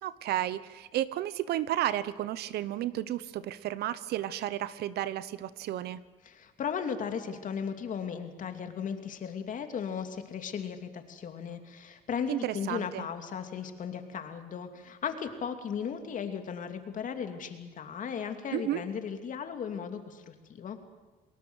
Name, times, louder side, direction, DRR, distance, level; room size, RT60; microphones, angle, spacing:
voice 1, 0.0-6.0 12.3-13.1 18.5-18.8, right 13 dB, 75° right, 16 dB, 1.0 m, -32 dB
voice 2, 6.2-20.8, left 7 dB, 50° left, 7 dB, 2.8 m, -36 dB
29.5 x 19.5 x 8.1 m, 1.2 s
cardioid pair, 110°, 17 cm